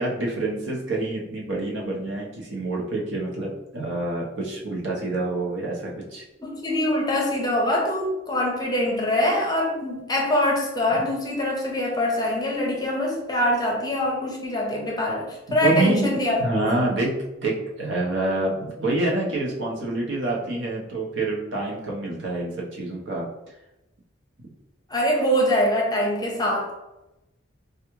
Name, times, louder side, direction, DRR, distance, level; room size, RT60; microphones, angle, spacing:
voice 1, 0.0-6.2 15.5-17.1 17.4-23.2, right 2 dB, 75° right, -3 dB, 0.8 m, -27 dB
voice 2, 6.4-16.4 24.9-26.8, left 1 dB, 20° left, -1 dB, 0.7 m, -24 dB
3.4 x 2.4 x 3.0 m, 0.93 s
head